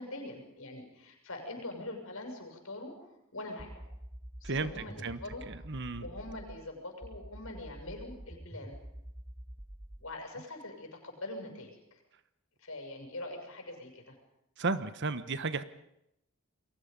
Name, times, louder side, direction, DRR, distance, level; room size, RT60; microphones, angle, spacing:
voice 1, 0.0-2.9 3.3-3.9 4.4-5.4 6.0-8.8 10.0-12.0 12.6-14.2, left 2 dB, 70° left, 3 dB, 6.9 m, -43 dB
sound 1, 3.6-6.6 7.0-10.0, right 1 dB, 15° right, 1.0 m, -47 dB
voice 2, 5.5-6.1 14.6-15.6, right 3 dB, 55° right, 13 dB, 1.2 m, -33 dB
29.5 x 22.5 x 5.5 m, 0.81 s
head